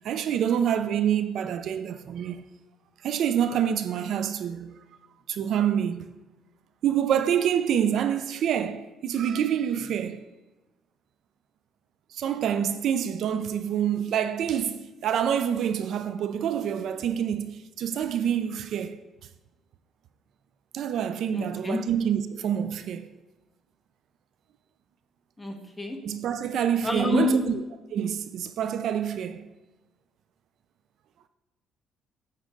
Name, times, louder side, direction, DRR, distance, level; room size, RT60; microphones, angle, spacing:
voice 1, 0.0-2.4 3.0-4.8 5.3-6.1 6.8-10.2 12.1-19.0 20.7-23.1 26.0-27.6 27.9-29.5, right 9 dB, 65° right, 0.5 m, -27 dB
voice 2, 21.3-21.8 25.4-26.0 26.8-27.4, left 2 dB, 10° left, 1.5 m, -27 dB
9.8 x 7.3 x 3.8 m
cardioid pair, 110°, 0 cm